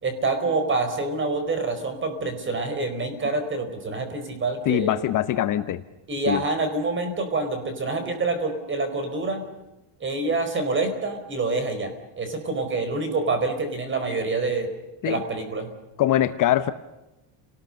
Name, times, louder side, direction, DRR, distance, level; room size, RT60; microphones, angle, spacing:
voice 1, 0.0-4.9 6.1-9.4 10.0-14.7 15.0-15.7, right 3 dB, 25° right, 8 dB, 4.6 m, -26 dB
voice 2, 4.6-5.8 6.3-6.4 15.0-15.2 16.0-16.7, left 12 dB, 40° left, 10 dB, 0.9 m, -22 dB
30.0 x 19.5 x 6.6 m, 1.0 s
cardioid pair, 160°, 49 cm